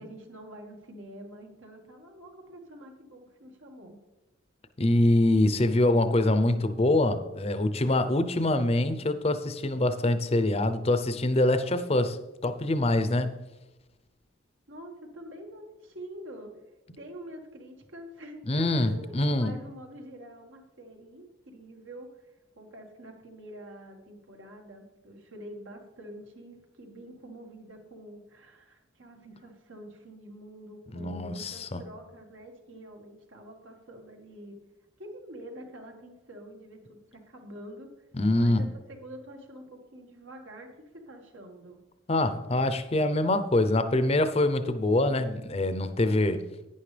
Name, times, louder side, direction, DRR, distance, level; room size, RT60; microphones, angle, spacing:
voice 1, 0.0-4.0 14.7-16.5 17.0-34.6 35.0-37.9 38.4-41.8, right 1 dB, 80° right, 1.8 m, -46 dB
voice 2, 4.8-13.4 18.5-19.5 30.9-31.8 38.1-38.6 42.1-46.4, left 1 dB, 30° left, 0.6 m, -25 dB
11.0 x 9.7 x 3.3 m
head